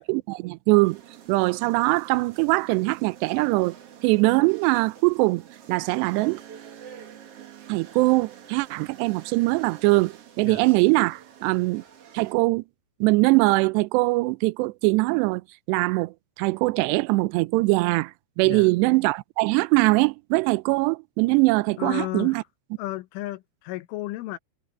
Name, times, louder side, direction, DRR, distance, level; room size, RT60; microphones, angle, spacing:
voice 1, 0.1-1.0 1.3-3.7 4.0-5.4 5.7-6.4 7.7-11.8 12.1-12.6 13.0-15.4 15.7-18.1 18.4-22.4, right 23 dB, 85° right, 2.5 m, -22 dB
sound 1, 0.8-12.3, right 9 dB, 70° right, 1.4 m, -47 dB
voice 2, 21.8-22.4 22.8-24.4, left 17 dB, 90° left, 3.6 m, -33 dB
omnidirectional pair, 5.5 m